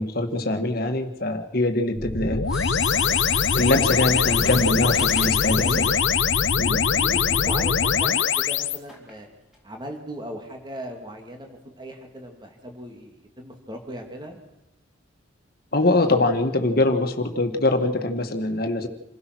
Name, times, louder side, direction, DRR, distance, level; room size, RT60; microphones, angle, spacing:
voice 1, 0.0-2.7 3.0-3.1 3.5-5.8 6.6-6.8 15.7-18.9, left 2 dB, 50° left, 6 dB, 1.9 m, -23 dB
sound 1, 2.0-8.8, left 6 dB, 70° left, 0.9 m, -22 dB
Mechanisms, 2.4-7.4 8.0-8.2 8.9-9.2 9.5-9.6, left 2 dB, ahead, 4.6 m, -39 dB
voice 2, 5.6-6.0 6.7-9.3 9.6-14.4, equal, 20° right, 3 dB, 2.8 m, -37 dB
27.5 x 16.0 x 6.3 m, 0.94 s
head